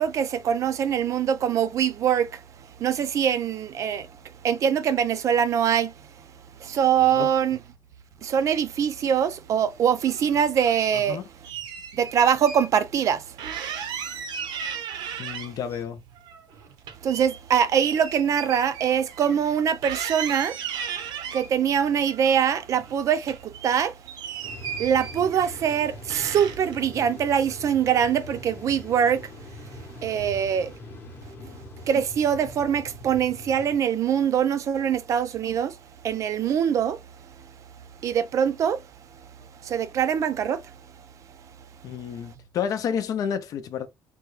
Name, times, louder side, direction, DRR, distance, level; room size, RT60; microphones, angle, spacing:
voice 1, 0.0-2.4 2.8-4.1 4.4-5.9 6.6-7.6 8.2-11.2 12.0-13.2 17.0-20.6 21.3-23.9 24.8-29.2 30.0-30.7 31.9-35.7 36.0-37.0 38.0-38.8 39.6-40.6, right 8 dB, 40° right, 0.4 m, -23 dB
sound 1, 9.9-11.0 11.4-12.7 13.0-13.1 13.4-15.8 16.1-19.6 19.8-21.5 22.1-22.9 23.2-25.7 26.1-26.8, right 8 dB, 70° right, 0.7 m, -36 dB
voice 2, 10.9-11.2 15.2-16.0 31.4-31.5 41.8-43.9, left 8 dB, 50° left, 0.5 m, -30 dB
sound 2, 24.4-33.7, left 1 dB, 25° left, 0.8 m, -42 dB
3.4 x 2.2 x 3.1 m
cardioid pair, 170°, 8 cm